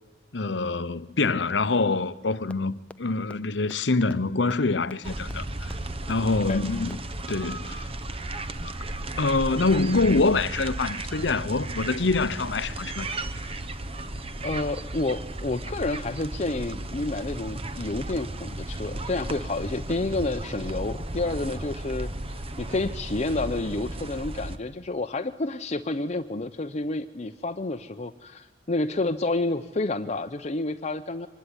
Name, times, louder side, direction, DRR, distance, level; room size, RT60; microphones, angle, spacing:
voice 1, 0.3-5.7 6.1-7.0 7.3-7.9 9.2-13.2, left 3 dB, 70° left, 0.9 m, -25 dB
sound 1, 2.5-2.6 2.9-3.0 3.3-3.4 3.7-3.8 4.1-4.2 4.5-4.6 4.9-5.0 5.3-5.4 5.7-5.8 6.1-6.2 6.5-6.6 6.9-7.0 7.3-7.4, left 1 dB, 5° left, 0.7 m, -42 dB
sound 2, 5.0-24.6, right 1 dB, 30° right, 1.2 m, -35 dB
voice 2, 14.4-31.3, left 2 dB, 40° left, 0.8 m, -29 dB
24.5 x 20.5 x 10.0 m
head